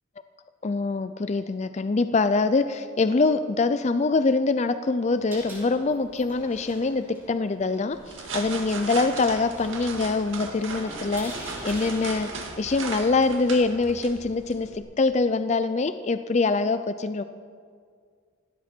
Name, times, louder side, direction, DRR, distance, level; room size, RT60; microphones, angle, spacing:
voice 1, 0.6-8.0 8.3-17.2, left 3 dB, 30° left, 11 dB, 0.4 m, -24 dB
sound 1, 5.0-13.8, right 1 dB, 10° right, 5.3 m, -45 dB
sound 2, 7.9-14.8, right 4 dB, 65° right, 2.0 m, -37 dB
19.0 x 16.5 x 4.4 m, 2.1 s
head